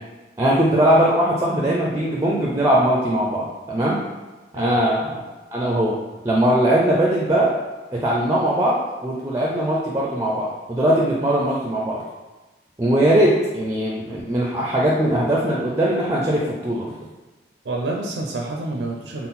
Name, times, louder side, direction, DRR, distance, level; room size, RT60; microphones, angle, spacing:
voice 1, 0.4-4.0 4.5-5.2 5.5-6.0 6.2-7.5 7.9-12.0 12.8-16.9, right 1 dB, 15° right, -3 dB, 0.4 m, -20 dB
voice 2, 4.5-4.9 17.7-19.3, right 2 dB, 75° right, 0 dB, 0.5 m, -28 dB
3.7 x 2.1 x 4.1 m, 1.2 s
head